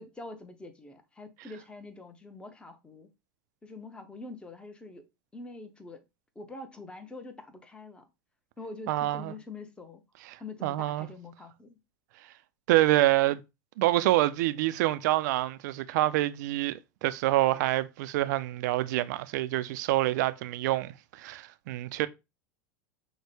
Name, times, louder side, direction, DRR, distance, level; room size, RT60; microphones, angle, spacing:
voice 1, 0.0-3.1 3.6-6.0 6.4-8.1 8.6-10.0 10.4-11.8, left 3 dB, 10° left, 0.7 m, -45 dB
voice 2, 8.9-9.3 10.3-11.1 12.7-13.4 13.8-22.1, right 16 dB, 70° right, 0.4 m, -27 dB
6.3 x 2.1 x 3.1 m
supercardioid pair, 115°, 10 cm